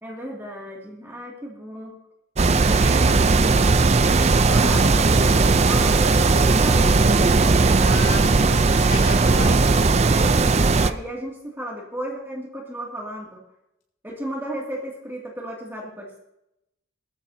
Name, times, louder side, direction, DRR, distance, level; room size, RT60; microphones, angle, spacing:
voice 1, 0.0-1.9 2.6-3.3 4.4-7.1 10.0-13.4 14.0-16.2, right 1 dB, 10° right, -3 dB, 2.4 m, -34 dB
sound 1, 2.4-10.9, right 3 dB, 30° right, 0.5 m, -17 dB
voice 2, 7.8-9.7, left 3 dB, 60° left, -2 dB, 6.7 m, -34 dB
21.5 x 14.0 x 2.8 m, 0.85 s
head